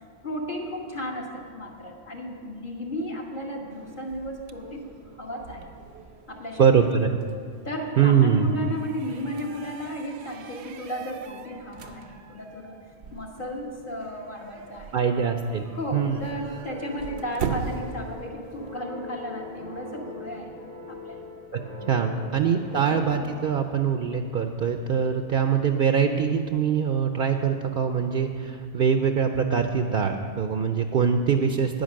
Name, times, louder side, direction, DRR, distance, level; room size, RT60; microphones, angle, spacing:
voice 1, 0.2-4.8 5.1-5.7 6.3-6.7 7.6-12.8 13.1-15.1 15.7-20.6 20.9-21.2 21.9-23.0, equal, 50° left, -2 dB, 1.6 m, -34 dB
sound 1, 3.7-18.7, right 6 dB, 80° right, 0.9 m, -41 dB
voice 2, 6.6-7.1 8.0-8.5 14.9-16.2 21.5-21.6 21.9-31.8, right 7 dB, 60° right, 6 dB, 0.7 m, -23 dB
sound 2, 16.1-25.1, left 3 dB, 80° left, 1.9 m, -42 dB
10.5 x 9.4 x 6.3 m, 2.2 s
omnidirectional pair, 1.1 m